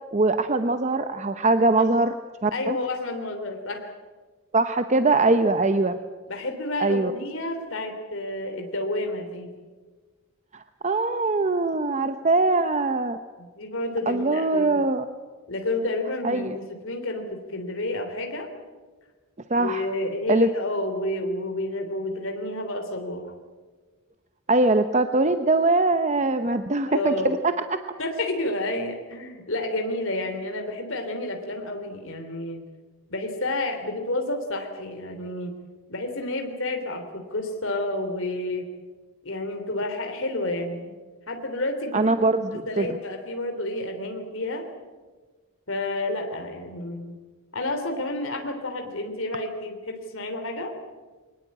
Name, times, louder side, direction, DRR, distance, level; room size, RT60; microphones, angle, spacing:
voice 1, 0.1-2.1 2.4-2.8 4.5-5.9 6.8-7.1 10.5-13.2 14.1-15.0 16.2-16.6 19.5-19.9 20.3-20.5 24.5-27.4 27.7-27.8 41.9-43.0, right 2 dB, 35° right, 9 dB, 0.8 m, -22 dB
voice 2, 2.5-3.9 6.3-9.5 13.4-14.8 15.5-18.5 19.6-23.3 26.9-27.3 28.0-32.6 33.1-35.5 35.9-38.7 39.2-40.9 41.3-44.7 45.7-47.1 47.5-50.8, left 2 dB, 65° left, 4 dB, 3.3 m, -30 dB
23.0 x 20.0 x 8.7 m, 1.4 s
head